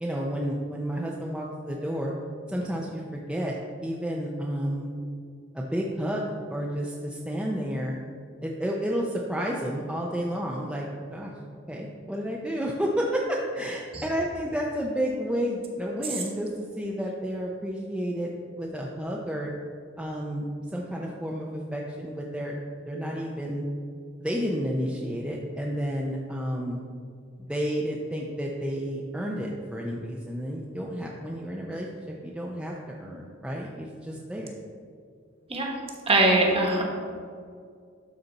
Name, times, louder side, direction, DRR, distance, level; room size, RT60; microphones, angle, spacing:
voice 1, 0.0-2.1 2.5-3.6 3.8-4.9 5.5-8.0 8.4-11.3 11.7-16.5 16.7-19.5 20.0-22.6 22.9-23.6 24.2-26.8 27.5-34.5, equal, 5° right, -3 dB, 0.5 m, -31 dB
voice 2, 36.1-36.8, right 2 dB, 30° right, 0 dB, 1.2 m, -21 dB
12.0 x 4.2 x 4.0 m, 2.2 s
head